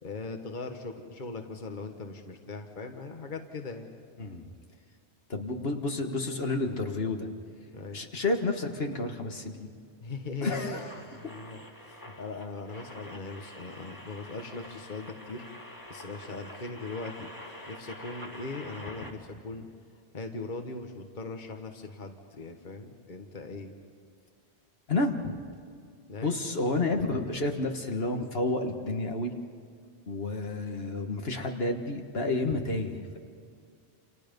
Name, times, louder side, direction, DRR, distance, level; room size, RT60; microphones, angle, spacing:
voice 1, 0.0-3.9 7.7-8.0 10.0-10.8 11.1-11.6 12.0-15.4 15.9-17.3 17.7-19.7 20.1-23.7 26.1-26.4, left 3 dB, 45° left, 4 dB, 1.6 m, -39 dB
voice 2, 4.2-4.5 5.3-7.3 7.9-9.7 10.4-11.3 24.9-25.3 26.2-29.3 30.1-33.2, left 2 dB, 60° left, 4 dB, 1.8 m, -30 dB
sound 1, 10.7-19.1, left 1 dB, 20° left, 2.1 m, -46 dB
29.0 x 28.0 x 5.3 m, 2.2 s
omnidirectional pair, 1.1 m